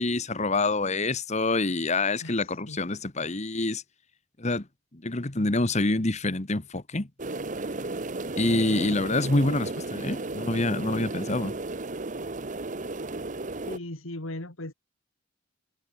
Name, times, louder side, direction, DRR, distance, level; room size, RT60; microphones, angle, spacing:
voice 1, 0.0-3.8 4.4-4.6 4.9-7.1 8.3-11.5, left 2 dB, 35° left, 1.4 m, -26 dB
voice 2, 2.2-2.8 13.6-14.7, left 1 dB, 70° left, 2.9 m, -39 dB
sound 1, 7.2-13.8, right 2 dB, 35° right, 1.1 m, -34 dB
head